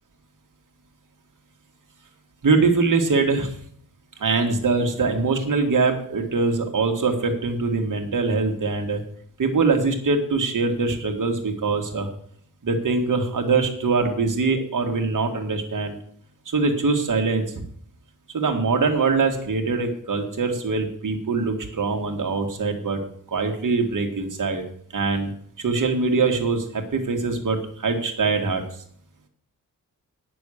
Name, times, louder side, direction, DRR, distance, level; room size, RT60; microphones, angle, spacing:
voice 1, 2.4-3.5 4.2-9.0 9.4-12.1 12.6-16.0 16.5-17.4 18.3-23.0 23.3-24.6 24.9-25.3 25.6-28.6, right 4 dB, 60° right, 3 dB, 2.1 m, -23 dB
10.0 x 6.9 x 6.6 m, 0.63 s
wide cardioid pair, 100°, 35 cm